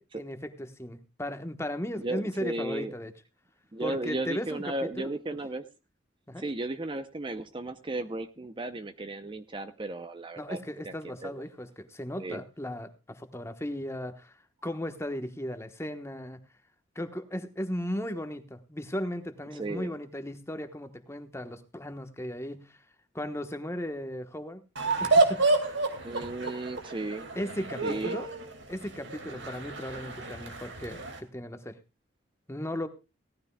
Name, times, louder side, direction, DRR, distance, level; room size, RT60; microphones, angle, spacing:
voice 1, 0.0-3.1 3.8-5.1 6.3-6.4 10.4-16.4 16.9-22.8 23.1-24.6 25.0-25.6 27.3-28.3 28.7-31.8 32.5-32.9, equal, 15° left, 9 dB, 1.2 m, -36 dB
voice 2, 1.9-2.9 3.7-5.7 6.4-10.6 10.8-11.4 12.2-12.4 19.5-20.0 26.0-27.3 27.8-28.2, right 2 dB, 25° right, 10 dB, 0.7 m, -35 dB
sound 1, 24.8-31.2, right 3 dB, 65° right, 2.3 m, -29 dB
17.5 x 13.5 x 2.3 m, 0.29 s
head